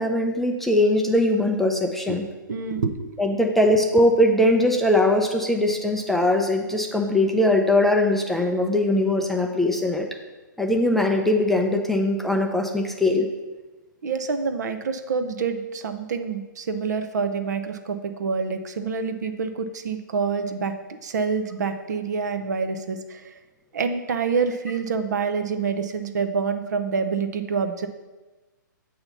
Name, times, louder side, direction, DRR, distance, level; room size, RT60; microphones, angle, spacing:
voice 1, 0.0-2.3 3.2-10.1 10.6-13.3, left 1 dB, ahead, 1 dB, 0.4 m, -21 dB
voice 2, 2.5-3.2 14.0-20.7 21.0-23.3 23.7-27.9, right 5 dB, 60° right, 8 dB, 0.6 m, -27 dB
7.6 x 2.8 x 5.7 m, 1.2 s
figure-of-eight pair, 120°, 11 cm